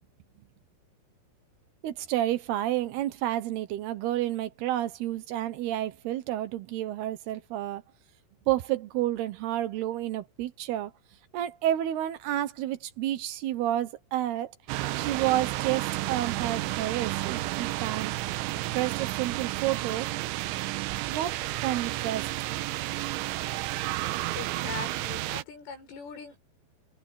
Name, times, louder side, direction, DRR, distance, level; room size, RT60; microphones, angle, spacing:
voice 1, 1.8-7.8 8.5-10.9 11.3-14.6 14.9-18.1 18.7-20.1 21.0-22.2, right 13 dB, 70° right, 2.7 m, -30 dB
sound 1, 14.7-25.4, right 17 dB, 85° right, 3.0 m, -31 dB
voice 2, 24.3-26.4, left 5 dB, 85° left, 10.0 m, -40 dB
omnidirectional pair, 5.6 m